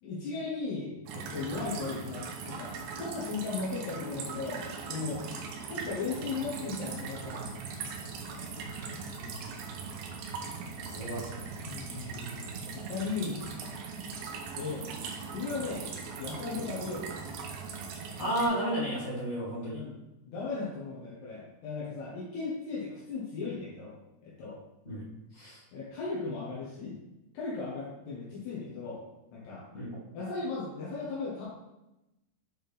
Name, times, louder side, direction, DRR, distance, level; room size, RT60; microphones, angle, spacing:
voice 1, 0.0-5.2 5.7-7.5 9.2-9.3 11.6-13.4 14.6-14.9 15.3-15.9 16.2-17.1 19.7-20.0 20.3-24.0 24.2-24.6 25.7-27.0 27.4-29.0 29.3-29.7 30.1-31.4, left 4 dB, 80° left, -6 dB, 3.4 m, -37 dB
sound 1, 1.1-18.5, right 5 dB, 75° right, 2.6 m, -40 dB
voice 2, 10.9-11.4 16.5-16.6 18.2-19.8 24.8-25.1 25.3-25.6 29.7-30.0, right 1 dB, 35° left, -8 dB, 1.2 m, -33 dB
8.5 x 4.3 x 3.5 m, 0.93 s
omnidirectional pair, 4.9 m